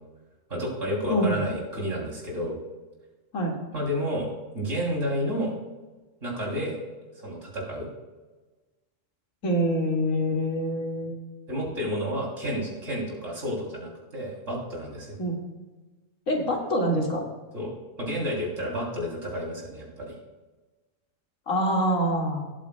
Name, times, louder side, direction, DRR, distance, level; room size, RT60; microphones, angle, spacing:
voice 1, 0.5-2.6 3.7-4.3 4.5-5.5 6.2-6.8 7.1-7.9 11.5-15.2 17.5-17.7 18.0-20.1, equal, 70° right, -2 dB, 3.5 m, -30 dB
voice 2, 1.1-1.4 3.3-3.6 9.4-11.2 15.2-15.4 16.3-17.2 21.5-22.5, equal, 90° left, -1 dB, 2.4 m, -25 dB
17.5 x 8.4 x 2.2 m, 1.2 s
omnidirectional pair, 1.3 m